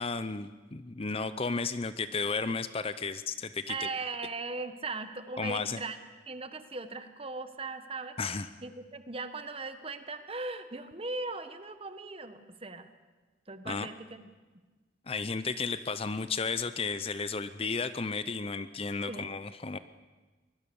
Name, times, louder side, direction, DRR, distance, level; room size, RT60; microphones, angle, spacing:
voice 1, 0.0-3.9 5.4-5.8 8.2-8.5 13.6-13.9 15.1-19.8, left 4 dB, 30° left, 13 dB, 0.6 m, -33 dB
voice 2, 3.7-6.0 6.3-8.2 8.6-12.9 13.5-14.3 19.1-19.4, right 3 dB, 30° right, 9 dB, 1.3 m, -38 dB
24.5 x 20.0 x 7.0 m, 1.3 s
head